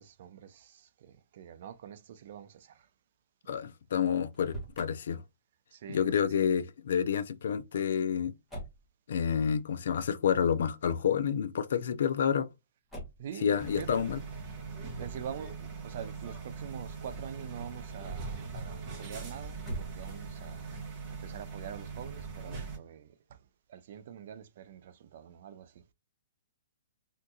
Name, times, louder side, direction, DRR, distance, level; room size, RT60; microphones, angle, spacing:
voice 1, 0.0-2.9 5.7-6.0 6.3-6.5 13.2-14.1 14.9-20.7 21.1-23.4 23.7-25.8, right 9 dB, 50° right, 0.5 m, -45 dB
voice 2, 3.5-5.2 5.9-8.3 9.1-12.5 13.4-14.2, left 8 dB, 60° left, 0.4 m, -29 dB
Motor vehicle (road), 4.3-4.9 8.5-8.9 10.8-11.2 12.9-13.3 14.9-15.3 19.5-20.4, right 1 dB, ahead, 1.1 m, -42 dB
sound 1, 13.6-22.8, right 4 dB, 20° right, 1.4 m, -41 dB
3.6 x 2.8 x 2.3 m
hypercardioid pair, 160°, 0 cm